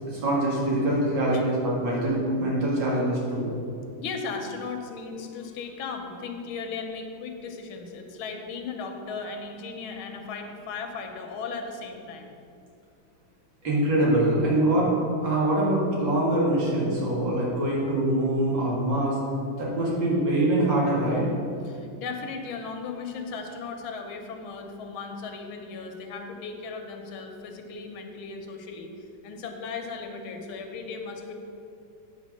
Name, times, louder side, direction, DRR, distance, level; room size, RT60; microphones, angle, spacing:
voice 1, 0.1-3.5 13.6-14.9 15.2-19.2 19.6-21.2, right 1 dB, 65° right, -5 dB, 2.5 m, -24 dB
voice 2, 4.0-12.4 21.6-28.9 29.2-31.3, left 4 dB, 85° left, 4 dB, 1.6 m, -36 dB
8.2 x 4.0 x 6.2 m, 2.6 s
omnidirectional pair, 2.2 m